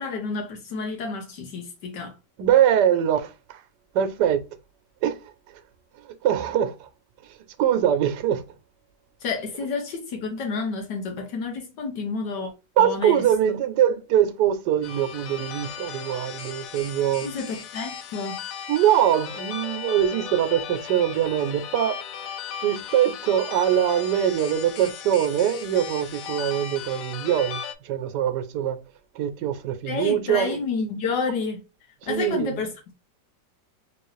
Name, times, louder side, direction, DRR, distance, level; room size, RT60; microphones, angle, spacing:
voice 1, 0.0-2.1 9.2-12.5 12.8-13.6 17.2-18.4 29.9-31.6 32.0-32.7, left 4 dB, 90° left, 1.7 m, -30 dB
voice 2, 2.4-3.6 3.9-4.4 5.0-5.2 6.0-6.9 7.6-8.4 12.8-17.3 18.7-22.0 22.6-28.8 29.1-30.6 32.0-32.6, right 10 dB, 85° right, 1.2 m, -23 dB
sound 1, 14.8-27.7, left 8 dB, 70° left, 0.8 m, -36 dB
3.7 x 3.0 x 3.1 m
omnidirectional pair, 1.8 m